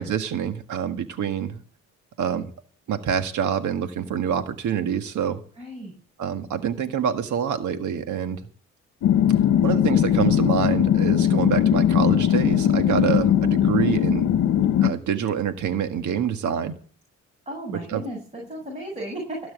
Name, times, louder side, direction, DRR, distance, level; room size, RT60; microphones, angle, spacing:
voice 1, 0.0-1.6 2.2-2.5 2.9-5.4 6.2-8.4 9.6-14.3 14.8-16.7 17.9-18.0, right 8 dB, 75° right, 8 dB, 1.7 m, -26 dB
voice 2, 5.6-5.9 17.5-19.4, right 1 dB, 20° right, -1 dB, 6.9 m, -34 dB
sound 1, 9.0-14.9, left 10 dB, 70° left, 1.0 m, -20 dB
17.0 x 6.2 x 8.5 m, 0.43 s
cardioid pair, 90°, 30 cm